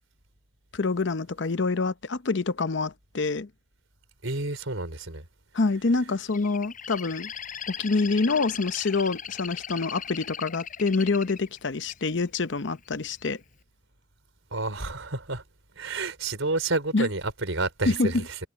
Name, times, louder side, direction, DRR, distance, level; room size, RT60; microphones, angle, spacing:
voice 1, 0.7-3.5 5.5-7.3 7.7-13.4 16.9-17.1 17.9-18.1, left 3 dB, 60° left, 0.7 m, -26 dB
voice 2, 4.2-5.2 14.5-15.4 15.8-18.4, right 3 dB, 75° right, 4.3 m, -30 dB
Bird, 6.3-12.4 12.9-13.3, left 8 dB, 40° left, 5.5 m, -39 dB
head